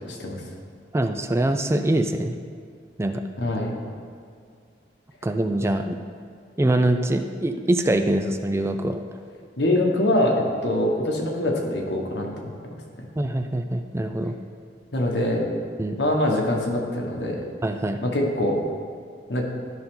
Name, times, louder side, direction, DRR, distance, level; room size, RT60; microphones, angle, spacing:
voice 1, 0.9-2.3 3.0-3.2 5.2-6.0 6.6-9.2 13.2-14.4 15.8-16.0 17.6-18.0, right 1 dB, 15° right, 7 dB, 0.4 m, -24 dB
voice 2, 3.4-3.7 9.6-12.5 14.9-15.6 16.0-17.4 18.0-18.6 19.3-19.5, left 1 dB, 85° left, 0 dB, 1.5 m, -23 dB
13.0 x 5.6 x 3.8 m, 2.2 s
head